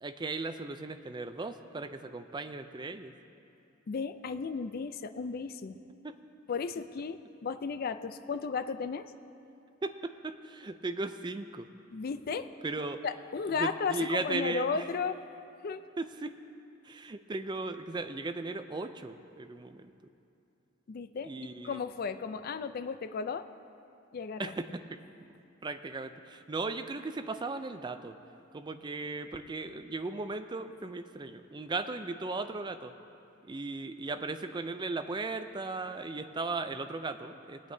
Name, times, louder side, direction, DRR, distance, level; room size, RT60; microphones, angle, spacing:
voice 1, 0.0-3.1 6.0-6.1 9.8-11.7 12.6-13.0 13.6-14.8 16.0-16.3 16.8-19.9 21.2-21.8 24.4-25.0 25.6-28.1 28.5-32.9 33.4-37.7, right 3 dB, 25° right, 9 dB, 0.4 m, -37 dB
voice 2, 3.9-5.8 6.5-9.1 11.9-12.5 13.0-15.2 15.6-15.8 20.9-23.5 24.1-24.5, left 5 dB, 50° left, 11 dB, 0.4 m, -34 dB
22.0 x 8.5 x 2.7 m, 2.7 s
head